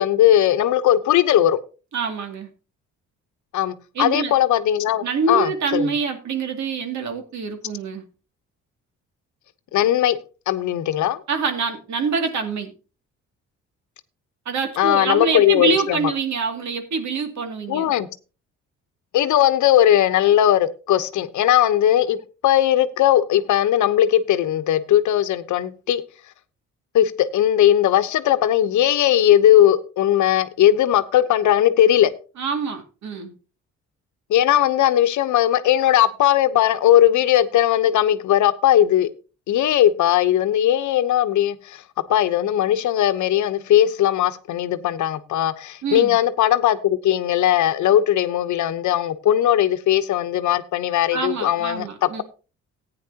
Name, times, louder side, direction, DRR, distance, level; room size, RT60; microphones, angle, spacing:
voice 1, 0.0-1.6 3.5-5.9 9.7-10.2 10.5-11.2 14.8-16.0 17.7-18.1 19.1-22.2 22.4-26.0 26.9-32.1 34.3-39.1 39.5-41.8 42.1-52.2, left 11 dB, 75° left, 1.0 m, -18 dB
voice 2, 1.9-2.5 3.9-4.4 5.0-8.0 11.3-12.7 14.5-17.9 32.4-33.3 45.8-46.2 51.1-52.2, right 4 dB, 70° right, 2.5 m, -25 dB
15.0 x 9.5 x 2.9 m
cardioid pair, 90°, 30 cm